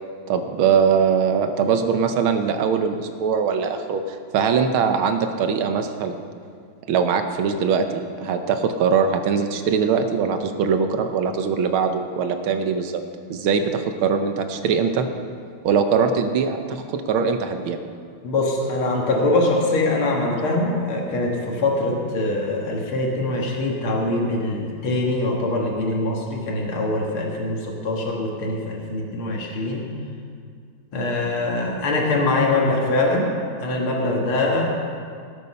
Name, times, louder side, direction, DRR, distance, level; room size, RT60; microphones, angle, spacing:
voice 1, 0.3-6.2 6.9-13.0 13.3-15.1 15.6-17.8, right 6 dB, 75° right, 7 dB, 1.7 m, -22 dB
voice 2, 18.2-29.9 30.9-33.3 33.6-34.7, left 2 dB, 75° left, -1 dB, 2.6 m, -23 dB
18.5 x 8.3 x 5.6 m, 2.2 s
omnidirectional pair, 2.4 m